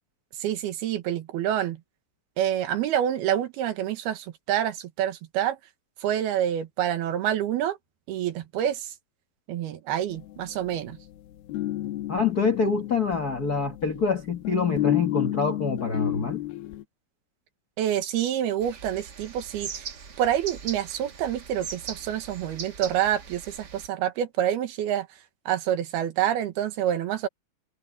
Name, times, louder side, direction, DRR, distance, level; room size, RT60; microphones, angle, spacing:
voice 1, 0.4-1.8 2.4-5.6 6.0-7.8 8.1-8.9 9.5-11.0 17.8-19.9 20.2-25.1 25.5-27.3, right 11 dB, 85° right, 3.4 m, -27 dB
sound 1, 10.1-16.8, left 15 dB, 80° left, 2.9 m, -31 dB
voice 2, 12.1-16.4, left 4 dB, 60° left, 1.0 m, -26 dB
sound 2, 18.6-23.9, right 6 dB, 55° right, 1.1 m, -40 dB
omnidirectional pair, 4.4 m